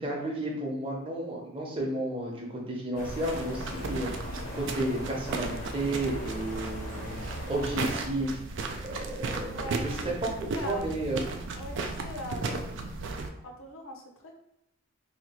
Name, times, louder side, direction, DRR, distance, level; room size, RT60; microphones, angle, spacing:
voice 1, 0.0-4.1 4.5-8.4 8.8-11.2, right 1 dB, 25° right, -3 dB, 0.8 m, -32 dB
sound 1, 2.9-8.0, left 1 dB, 35° left, 0.6 m, -40 dB
sound 2, 3.0-13.3, right 3 dB, 60° right, 0.4 m, -35 dB
voice 2, 9.5-10.1 10.5-10.9 11.5-14.4, left 1 dB, 70° left, 2 dB, 0.7 m, -42 dB
2.8 x 2.4 x 4.2 m, 0.85 s
head